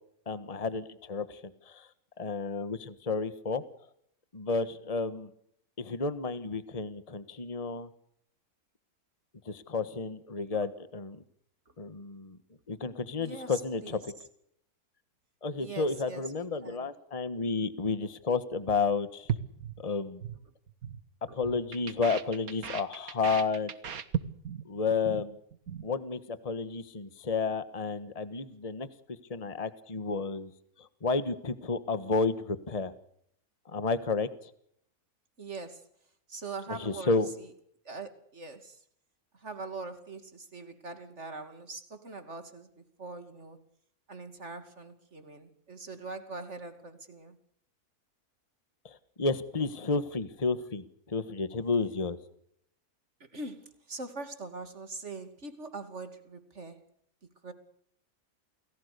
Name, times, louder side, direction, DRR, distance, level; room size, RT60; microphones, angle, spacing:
voice 1, 0.3-1.4 1.7-1.9 2.2-3.6 4.3-5.3 5.8-7.9 9.4-11.2 11.8-12.4 12.7-14.1 15.4-19.3 19.8-20.2 21.3-23.7 24.7-25.4 25.8-28.9 29.3-30.5 31.0-32.9 33.7-34.3 36.7-37.3 48.8-52.2, left 4 dB, 25° left, 1.5 m, -31 dB
voice 2, 13.2-14.0 15.6-16.9 21.3-21.4 35.4-35.9 36.3-37.5 37.8-38.8 39.3-43.6 44.1-47.4 53.3-56.9 57.4-57.5, right 3 dB, 50° right, 3.0 m, -42 dB
sound 1, 19.3-20.4 20.7-21.0 21.3-24.7 24.9-25.2 25.5-25.9, right 8 dB, 70° right, 1.9 m, -36 dB
29.0 x 19.0 x 6.8 m
omnidirectional pair, 1.6 m